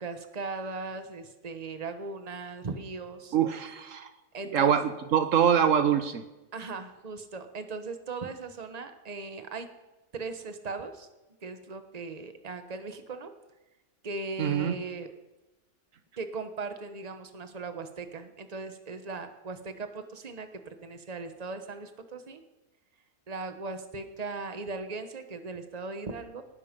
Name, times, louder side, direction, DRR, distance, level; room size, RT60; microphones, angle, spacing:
voice 1, 0.0-3.3 4.3-4.7 6.5-9.7 10.1-11.1 11.4-13.3 14.0-15.1 16.2-20.5 20.8-22.4 23.3-26.4, right 3 dB, 30° right, 8 dB, 1.2 m, -38 dB
voice 2, 3.3-4.1 4.5-6.2 14.4-14.8, right 8 dB, 75° right, 10 dB, 1.2 m, -24 dB
18.5 x 11.0 x 5.3 m, 1.1 s
omnidirectional pair, 1.4 m